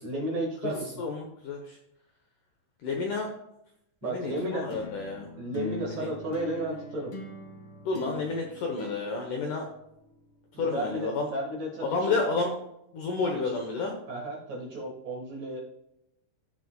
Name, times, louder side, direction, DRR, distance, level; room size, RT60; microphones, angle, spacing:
voice 1, 0.0-0.9 4.0-4.8 5.4-7.1 10.5-12.2 13.2-13.5 14.1-15.7, right 1 dB, 50° right, -2 dB, 2.5 m, -33 dB
voice 2, 1.0-1.8 2.8-3.3 4.0-5.3 5.8-6.1 7.9-9.6 10.6-11.3 11.8-12.5 12.9-13.9, left 3 dB, 70° left, 1 dB, 2.0 m, -30 dB
sound 1, 4.7-10.3, left 2 dB, 50° left, 1.6 m, -42 dB
16.0 x 6.6 x 2.3 m, 0.82 s
omnidirectional pair, 4.9 m